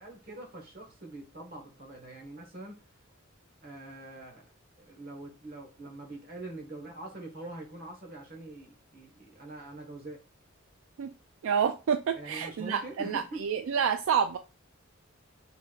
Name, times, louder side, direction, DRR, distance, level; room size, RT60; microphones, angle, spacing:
voice 1, 0.0-2.8 3.6-4.5 4.8-10.2 12.1-13.4, right 2 dB, 45° right, 1.2 m, -44 dB
voice 2, 11.4-14.4, right 7 dB, 75° right, 0.3 m, -28 dB
4.0 x 3.9 x 2.4 m
head